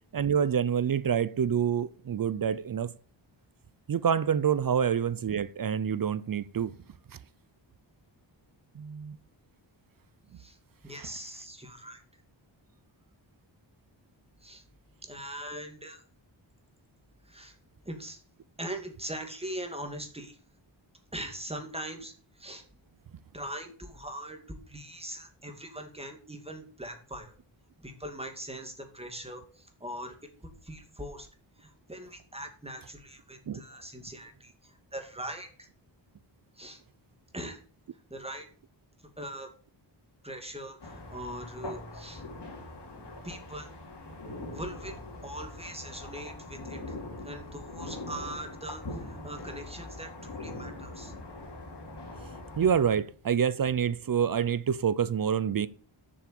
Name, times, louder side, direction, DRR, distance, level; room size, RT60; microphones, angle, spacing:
voice 1, 0.1-2.9 3.9-6.7 8.7-9.2 11.0-11.1 33.5-33.6 52.2-52.3 52.6-55.7, right 8 dB, 50° right, 0.5 m, -27 dB
voice 2, 10.8-12.0 14.4-14.6 15.0-16.0 17.3-17.6 17.9-18.2 18.6-20.4 21.1-22.6 23.3-24.4 24.7-27.3 27.8-30.1 30.6-31.3 31.6-35.7 36.6-36.8 37.3-37.6 38.1-38.5 39.2-39.5 40.2-42.2 43.2-43.7 44.5-47.0 47.2-51.1, right 1 dB, 15° right, 2.4 m, -41 dB
sound 1, 40.8-52.9, left 2 dB, 60° left, 3.6 m, -42 dB
7.4 x 7.0 x 7.0 m
wide cardioid pair, 110°, 46 cm